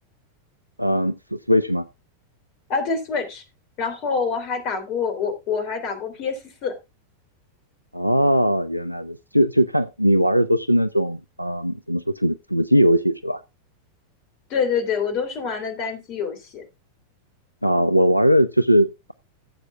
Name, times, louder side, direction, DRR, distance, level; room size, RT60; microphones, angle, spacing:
voice 1, 0.8-1.8 7.9-13.4 17.6-19.1, equal, 90° left, 0.5 m, -20 dB
voice 2, 2.7-3.4 3.8-6.8 14.5-16.6, left 5 dB, 40° left, 3.3 m, -26 dB
16.0 x 8.1 x 2.4 m
figure-of-eight pair, 90°, 0 cm